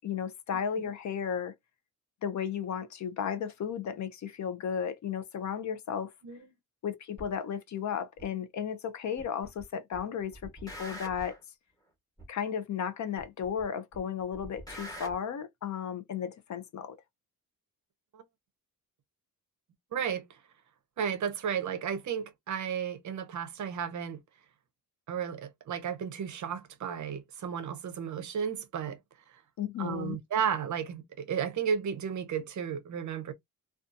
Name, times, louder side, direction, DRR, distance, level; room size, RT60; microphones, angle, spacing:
voice 1, 0.0-1.5 2.2-6.1 6.8-11.4 12.3-17.0 29.6-30.2, left 8 dB, 50° left, 0.5 m, -34 dB
sound 1, 7.2-7.3 8.2-8.3 9.2-9.6 9.9-11.4 12.2-12.3 13.2-13.6 13.9-15.1, equal, 10° left, 1.0 m, -44 dB
voice 2, 19.9-20.2 21.0-24.2 25.1-29.0 29.8-33.3, right 7 dB, 50° right, 0.6 m, -33 dB
2.6 x 2.3 x 2.5 m
wide cardioid pair, 175°, 37 cm